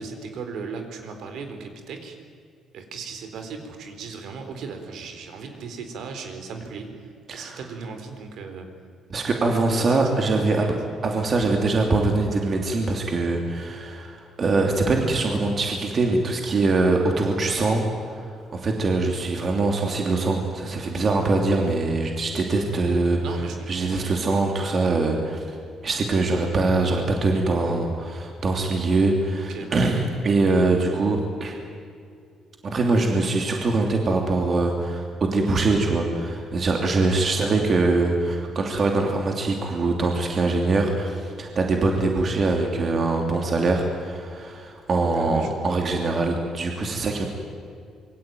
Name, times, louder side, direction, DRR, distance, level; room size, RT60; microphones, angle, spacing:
voice 1, 0.0-2.2 2.7-8.7 9.4-10.7 23.2-24.2 29.5-29.7 37.2-37.3 45.1-45.8, right 5 dB, 60° right, 6 dB, 4.0 m, -37 dB
voice 2, 7.3-7.6 9.1-10.7 11.0-23.2 23.7-25.6 25.8-31.5 32.6-47.3, right 3 dB, 30° right, 2 dB, 2.9 m, -23 dB
27.0 x 23.5 x 9.3 m, 2.3 s
cardioid pair, 170°, 0 cm